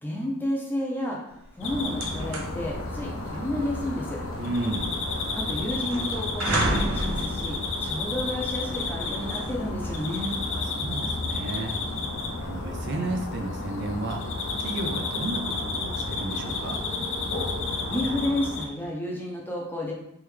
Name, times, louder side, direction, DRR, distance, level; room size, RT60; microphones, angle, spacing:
voice 1, 0.0-4.2 5.4-10.4 17.9-19.9, left 1 dB, 10° left, -2 dB, 0.6 m, -31 dB
sound 1, 1.4-1.5 1.8-12.7, right 1 dB, 85° right, 0.7 m, -34 dB
sound 2, 1.6-18.7, left 3 dB, 65° left, 0.5 m, -31 dB
voice 2, 4.4-4.9 10.5-11.7 12.4-14.2 14.6-16.8, right 2 dB, 55° right, 3 dB, 0.5 m, -33 dB
3.5 x 3.3 x 3.2 m, 0.77 s
head